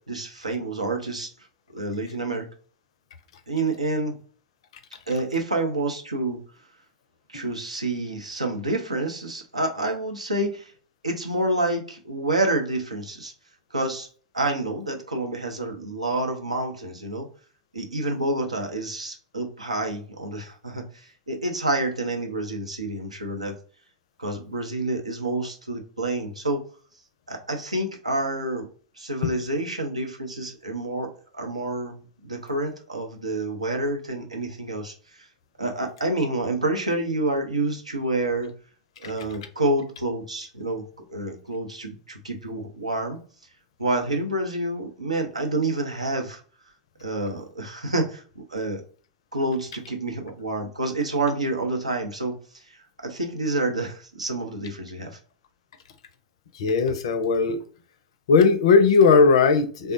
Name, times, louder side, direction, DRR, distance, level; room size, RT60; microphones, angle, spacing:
voice 1, 0.1-1.3 1.7-2.5 3.5-4.2 5.1-6.4 7.3-10.7 11.0-13.3 13.7-14.1 14.3-17.3 17.7-23.6 24.2-26.6 27.3-28.7 29.0-35.3 35.6-38.5 39.0-43.2 43.8-46.4 47.0-48.8 49.3-52.6 53.0-55.2, right 2 dB, 90° right, 3 dB, 0.5 m, -28 dB
voice 2, 56.5-57.6 58.3-59.9, left 5 dB, 65° left, 10 dB, 0.4 m, -18 dB
3.3 x 2.1 x 2.5 m, 0.42 s
figure-of-eight pair, 90°, 3 cm